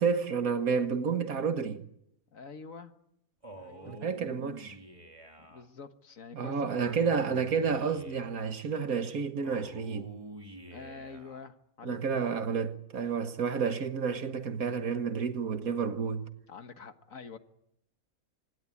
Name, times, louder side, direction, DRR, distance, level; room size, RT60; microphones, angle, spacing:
voice 1, 0.0-1.8 3.9-4.8 6.3-10.1 11.8-16.3, right 6 dB, 70° right, 1.9 m, -30 dB
voice 2, 2.3-2.9 3.6-3.9 5.5-6.9 10.7-12.2 16.5-17.4, left 5 dB, 60° left, 1.9 m, -46 dB
Male speech man speaking, 3.4-5.6 6.7-8.5 9.4-11.4, right 1 dB, 20° right, 2.9 m, -48 dB
26.0 x 20.0 x 8.6 m
omnidirectional pair, 1.6 m